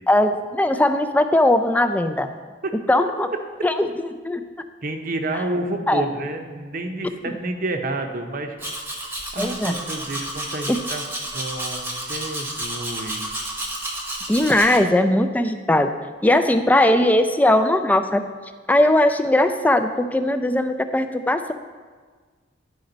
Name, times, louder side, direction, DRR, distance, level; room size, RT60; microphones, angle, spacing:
voice 1, 0.1-2.3 2.9-3.3 3.6-3.9 4.2-4.4 5.3-5.4 5.9-6.1 9.4-9.8 10.7-10.8 14.3-15.9 16.2-18.2 18.7-21.5, left 1 dB, 10° left, 9 dB, 0.3 m, -19 dB
voice 2, 4.8-8.6 9.3-11.0 11.3-13.3, right 2 dB, 50° right, 5 dB, 0.7 m, -29 dB
Domestic sounds home sounds, 8.6-14.8, right 1 dB, 10° right, 0.9 m, -31 dB
10.5 x 5.1 x 3.9 m, 1.5 s
head